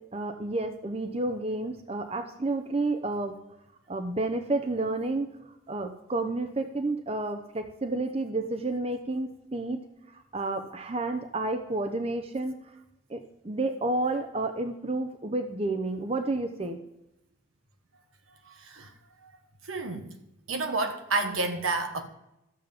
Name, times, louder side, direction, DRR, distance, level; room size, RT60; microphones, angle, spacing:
voice 1, 0.1-3.4 3.9-5.3 5.7-9.8 10.3-12.6 13.1-13.2 13.4-16.8, right 2 dB, 30° right, 0.7 m, -30 dB
voice 2, 18.5-18.9 19.7-20.1 20.5-22.1, right 3 dB, 85° right, 1.4 m, -30 dB
13.5 x 7.3 x 5.2 m
head